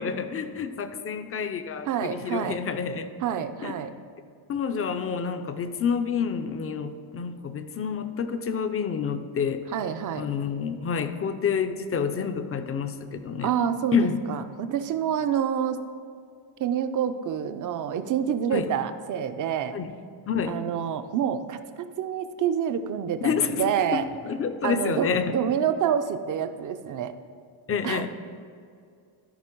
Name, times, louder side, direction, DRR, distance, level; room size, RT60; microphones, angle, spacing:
voice 1, 0.0-3.1 3.6-3.8 4.5-9.6 10.2-13.5 13.9-14.2 18.5-18.7 19.7-19.9 20.3-20.6 23.2-24.0 24.2-25.4 27.7-28.1, left 6 dB, 30° left, 9 dB, 0.4 m, -28 dB
voice 2, 1.9-2.6 3.2-3.9 9.7-10.3 13.4-15.8 16.6-19.8 20.5-21.6 22.0-24.1 24.6-27.1 27.8-28.1, right 8 dB, 40° right, 10 dB, 0.5 m, -27 dB
13.5 x 4.6 x 4.5 m, 2.3 s
cardioid pair, 145°, 50 cm